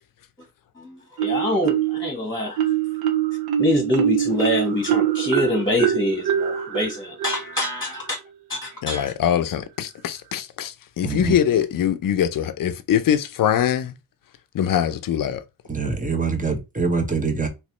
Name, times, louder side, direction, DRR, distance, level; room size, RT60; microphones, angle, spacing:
voice 1, 0.8-2.6 3.6-8.2 8.5-9.1, left 1 dB, 10° left, 1.5 m, -25 dB
Marimba xylophone, 1.2-2.1 2.6-8.1, right 10 dB, 80° right, 0.7 m, -24 dB
voice 2, 8.8-14.0 14.5-15.4, left 9 dB, 60° left, 0.6 m, -23 dB
voice 3, 11.0-11.3 15.7-17.5, right 4 dB, 20° right, 1.1 m, -24 dB
3.2 x 3.1 x 3.0 m
cardioid pair, 70°, 37 cm